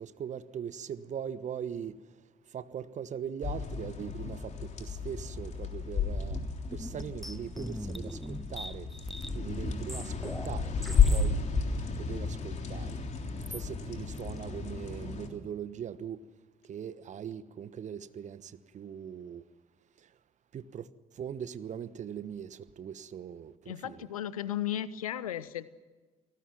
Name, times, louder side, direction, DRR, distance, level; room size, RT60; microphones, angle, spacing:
voice 1, 0.0-2.0 2.5-6.4 6.7-8.9 9.3-11.4 12.0-13.0 13.5-16.2 16.6-19.4 20.0-20.1 20.5-20.9 21.1-24.1, right 8 dB, 40° right, 1.2 m, -40 dB
sound 1, 3.4-15.3, left 5 dB, 40° left, 3.4 m, -32 dB
sound 2, 6.7-11.3 11.9-12.0 13.3-13.6 14.2-14.4, equal, ahead, 1.1 m, -41 dB
voice 2, 23.7-25.7, left 11 dB, 75° left, 0.8 m, -35 dB
29.0 x 19.0 x 6.0 m
figure-of-eight pair, 50°, 18 cm